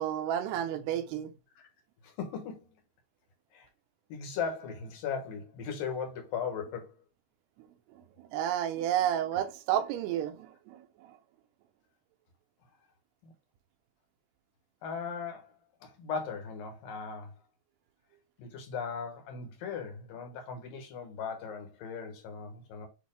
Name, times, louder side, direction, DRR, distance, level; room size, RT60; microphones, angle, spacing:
voice 1, 0.0-1.3 7.9-11.2, right 11 dB, 85° right, 2.8 m, -31 dB
voice 2, 2.0-2.7 3.5-3.7 4.1-7.0 13.2-13.3 14.8-17.4 18.4-22.9, left 6 dB, 70° left, 2.6 m, -38 dB
8.7 x 3.1 x 3.5 m
omnidirectional pair, 4.7 m